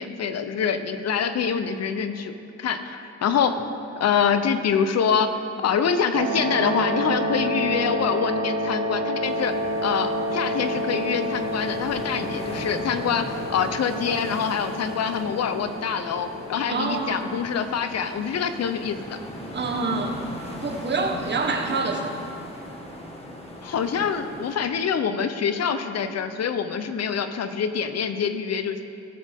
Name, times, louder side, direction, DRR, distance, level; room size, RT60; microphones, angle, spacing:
voice 1, 0.0-2.3 2.6-3.7 4.0-9.5 9.8-19.2 23.6-28.8, left 7 dB, 55° left, 10 dB, 0.9 m, -25 dB
sound 1, 6.1-16.9, equal, 70° right, 2.2 m, -29 dB
sound 2, 9.2-24.6, left 1 dB, 20° left, 1.7 m, -39 dB
voice 2, 16.7-17.3 19.5-20.2 20.6-22.2, right 3 dB, 35° right, 3 dB, 1.5 m, -26 dB
18.0 x 7.4 x 3.7 m, 3.0 s
cardioid pair, 90°, 30 cm